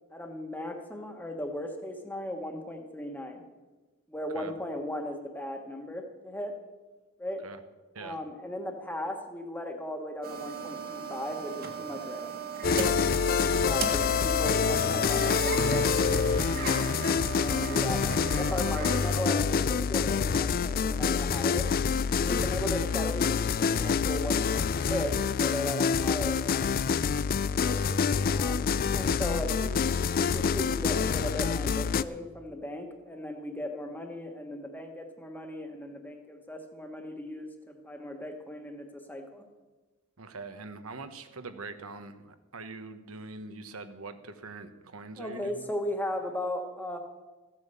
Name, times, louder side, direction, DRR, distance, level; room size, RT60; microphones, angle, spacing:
voice 1, 0.1-3.4 4.1-6.6 7.2-7.4 8.0-12.3 12.7-12.9 13.6-16.9 17.4-21.7 22.2-26.6 27.6-27.8 28.3-39.4 45.2-47.0, left 1 dB, 10° left, 4 dB, 1.3 m, -37 dB
sound 1, 10.2-19.1, right 6 dB, 45° right, 1.5 m, -37 dB
sound 2, 12.6-32.0, left 6 dB, 45° left, 0.4 m, -27 dB
voice 2, 19.0-19.4 27.7-28.4 29.2-29.3 40.2-45.7, right 3 dB, 85° right, 9 dB, 1.0 m, -43 dB
14.5 x 8.7 x 6.9 m, 1.2 s
head